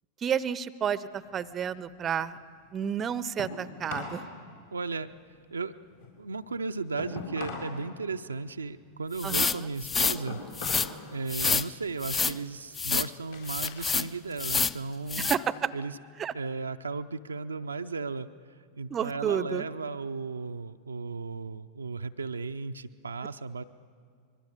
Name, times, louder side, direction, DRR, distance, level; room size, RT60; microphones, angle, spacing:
voice 1, 0.2-2.4 2.7-4.3 9.2-9.6 15.2-15.7 16.2-16.3 18.9-19.6, right 8 dB, 25° right, 18 dB, 0.6 m, -31 dB
sound 1, 1.1-4.3 4.6-7.8 8.1-11.0 11.4-11.8 12.3-13.9 14.3-15.5, left 3 dB, 65° left, 3.9 m, -42 dB
voice 2, 4.7-5.1 5.5-5.7 6.2-10.4 11.1-15.3 15.7-16.0 16.3-18.3 18.8-23.6, right 4 dB, 75° right, 7 dB, 0.5 m, -35 dB
sound 2, 9.2-10.2 10.5-10.9 11.3-11.7 12.0-12.4 12.7-13.1 13.5-14.1 14.4-14.8 15.1-15.4, left 5 dB, 20° left, 0.5 m, -27 dB
25.0 x 22.0 x 6.5 m, 2.1 s
figure-of-eight pair, 90°, 0 cm